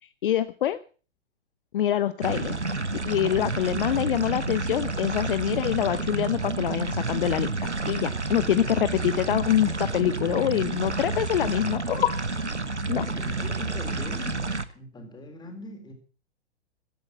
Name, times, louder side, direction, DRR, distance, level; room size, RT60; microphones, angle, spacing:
voice 1, 0.2-0.8 1.7-2.6 3.0-7.5 7.9-12.2 12.9-13.1, left 11 dB, 50° left, 14 dB, 0.9 m, -25 dB
sound 1, 2.2-14.6, right 3 dB, 90° right, 1.2 m, -30 dB
voice 2, 12.9-14.4 14.7-15.9, left 1 dB, 10° left, 6 dB, 3.8 m, -40 dB
15.5 x 10.5 x 5.9 m, 0.38 s
figure-of-eight pair, 110°, 34 cm